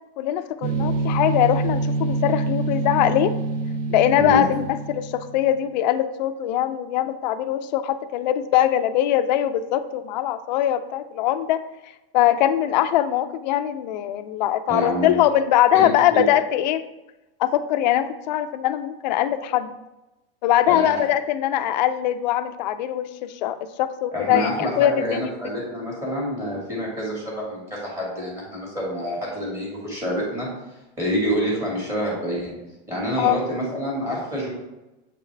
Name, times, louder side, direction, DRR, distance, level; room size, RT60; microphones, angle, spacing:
voice 1, 0.2-3.3 3.9-11.6 12.1-16.8 17.4-19.7 20.4-25.2 33.2-33.4, left 12 dB, 50° left, 10 dB, 0.5 m, -22 dB
sound 1, 0.6-5.5, right 3 dB, 75° right, 0.8 m, -26 dB
voice 2, 14.7-15.2 15.7-16.3 20.7-20.9 24.1-30.5 31.0-32.6 32.9-34.5, equal, 10° right, -4 dB, 2.1 m, -27 dB
7.5 x 4.7 x 3.3 m, 0.98 s
supercardioid pair, 175°, 29 cm